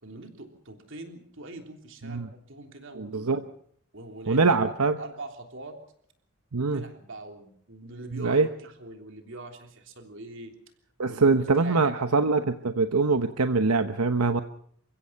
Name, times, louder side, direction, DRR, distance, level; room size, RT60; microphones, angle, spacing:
voice 1, 0.0-3.4 3.9-4.7 5.0-5.8 6.6-10.5 11.1-12.2, right 2 dB, 60° right, 4 dB, 3.4 m, -43 dB
voice 2, 3.0-3.4 4.3-5.0 6.5-6.8 8.1-8.5 11.0-14.4, right 4 dB, 90° right, 8 dB, 1.0 m, -23 dB
29.0 x 16.0 x 5.8 m, 0.63 s
head